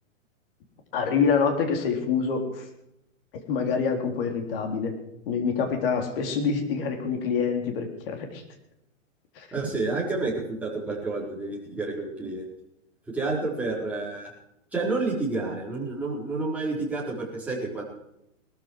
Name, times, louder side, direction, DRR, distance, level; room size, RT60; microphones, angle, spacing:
voice 1, 0.9-2.7 3.5-4.9 5.3-8.4 9.4-9.5, left 5 dB, 45° left, 4 dB, 3.8 m, -26 dB
voice 2, 9.5-12.5 13.1-14.3 14.7-17.8, right 3 dB, 5° right, -4 dB, 4.5 m, -29 dB
19.5 x 13.5 x 4.9 m, 0.81 s
hypercardioid pair, 155°, 40 cm